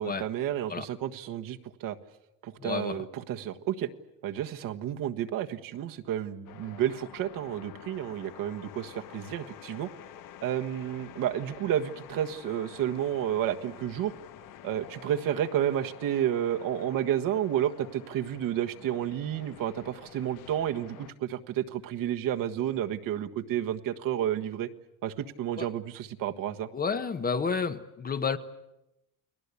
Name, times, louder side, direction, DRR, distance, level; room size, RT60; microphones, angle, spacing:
voice 1, 0.0-2.0 2.4-3.9 4.2-9.9 10.4-14.1 14.6-24.7 25.0-26.7, right 11 dB, 60° right, 6 dB, 1.6 m, -31 dB
voice 2, 2.6-3.0 25.6-25.7 26.7-28.4, left 5 dB, 25° left, 10 dB, 1.1 m, -30 dB
sound 1, 6.5-21.1, left 10 dB, 55° left, 1.4 m, -49 dB
30.0 x 20.5 x 8.4 m, 0.91 s
cardioid pair, 150°, 38 cm